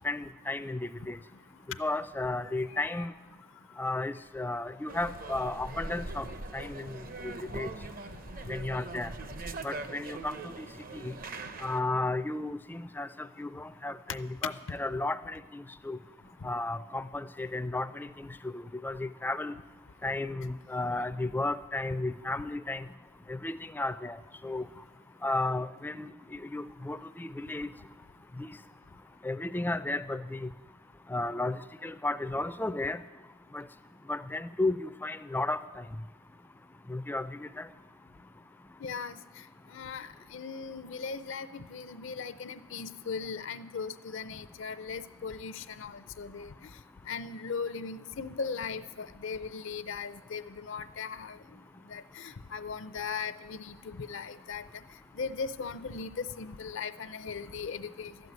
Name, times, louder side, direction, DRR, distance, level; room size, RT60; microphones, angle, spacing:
voice 1, 0.0-1.2 1.8-3.1 3.8-6.3 6.5-7.0 7.2-7.7 8.5-9.1 9.6-10.7 10.9-11.1 11.6-16.0 16.4-19.5 20.0-22.8 23.3-24.2 24.4-24.6 25.2-27.7 28.4-28.5 29.2-30.5 31.1-33.0 33.5-33.6 34.1-35.8 36.9-37.7, left 2 dB, 10° left, 13 dB, 0.3 m, -34 dB
voice 2, 2.4-3.1 38.8-39.2 39.7-46.5 47.1-51.4 51.9-54.6 55.2-58.1, left 5 dB, 65° left, 13 dB, 0.5 m, -38 dB
sound 1, 4.9-11.8, right 2 dB, 45° right, 0.6 m, -41 dB
12.5 x 7.9 x 9.5 m, 1.2 s
head